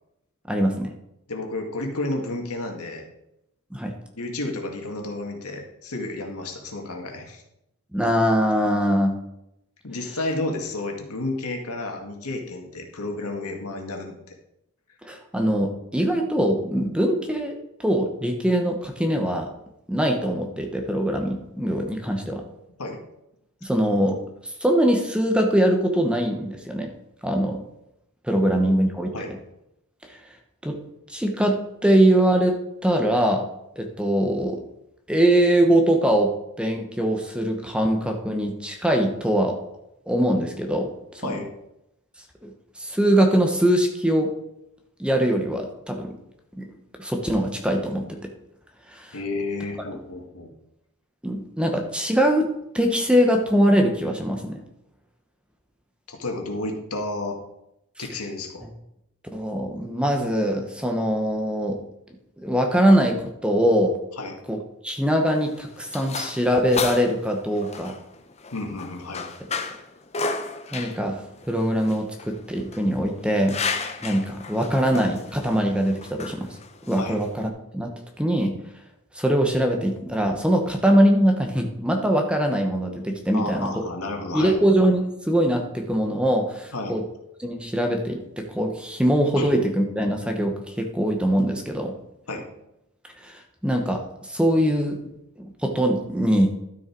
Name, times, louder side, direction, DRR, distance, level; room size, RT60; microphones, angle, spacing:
voice 1, 0.5-0.9 3.7-4.0 7.9-9.2 15.0-19.5 19.9-22.4 23.6-24.2 24.4-26.9 27.2-27.6 28.2-29.1 30.0-30.2 30.6-30.8 31.1-32.6 32.8-33.5 33.8-34.6 35.1-36.3 36.6-39.6 40.1-40.9 41.1-41.3 42.4-42.5 42.8-44.3 45.0-46.1 46.6-46.7 47.0-48.1 48.9-49.2 51.2-54.6 58.0-58.1 59.3-61.8 62.4-63.9 64.5-64.6 64.8-68.0 70.7-71.2 71.5-73.6 74.0-76.6 76.9-77.9 78.2-78.6 79.1-83.7 84.3-87.0 87.4-91.9 93.2-95.0 95.4-96.5, equal, 5° right, 3 dB, 1.1 m, -22 dB
voice 2, 1.3-3.1 4.2-7.4 9.8-14.1 22.8-23.0 28.4-28.7 29.1-29.4 41.2-41.5 49.1-50.5 56.1-57.4 58.0-58.6 64.2-64.4 68.5-69.3 77.0-77.2 83.3-84.6 86.7-87.0 89.4-89.5 92.3-92.4, left 2 dB, 85° left, 2 dB, 2.0 m, -31 dB
sound 1, 65.2-77.5, left 4 dB, 30° left, 0.8 m, -34 dB
12.0 x 6.5 x 4.6 m, 0.84 s
head